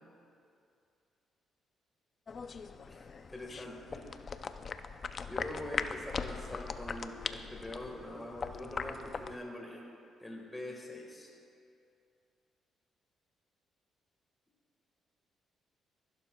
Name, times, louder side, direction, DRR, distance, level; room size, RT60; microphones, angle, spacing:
sound 1, 2.3-9.4, left 5 dB, 45° left, 0.4 m, -40 dB
voice 1, 2.9-4.1 5.2-9.8 10.2-11.3, left 1 dB, 10° left, -1 dB, 1.5 m, -44 dB
15.0 x 12.0 x 2.3 m, 2.5 s
cardioid pair, 90°, 0 cm